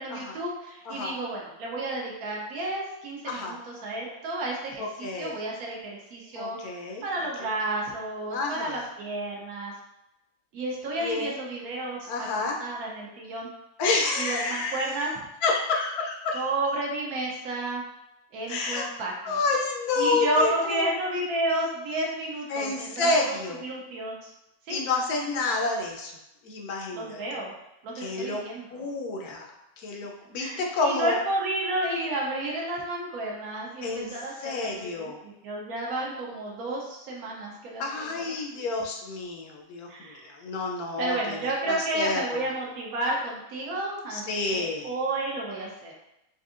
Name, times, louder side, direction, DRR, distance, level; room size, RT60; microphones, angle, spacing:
voice 1, 0.0-6.6 7.0-9.7 10.5-13.5 14.2-15.1 16.3-17.8 18.3-19.4 20.0-24.3 24.7-24.8 26.9-27.5 27.8-28.8 30.4-34.9 35.2-37.8 38.2-38.7 39.9-40.3 41.0-45.9, right 1 dB, 80° right, -3 dB, 1.2 m, -31 dB
voice 2, 3.3-3.6 4.8-5.3 6.3-7.0 8.3-8.8 11.0-11.4 12.1-12.6 13.8-14.9 15.4-16.4 18.5-18.9 19.2-20.9 22.5-23.6 24.7-26.1 26.4-27.2 27.9-28.4 28.7-29.5 29.8-31.2 33.8-34.1 34.4-35.2 37.8-42.5 44.1-44.9, left 3 dB, 85° left, 1 dB, 1.2 m, -29 dB
4.4 x 2.6 x 2.5 m, 0.86 s
omnidirectional pair, 1.5 m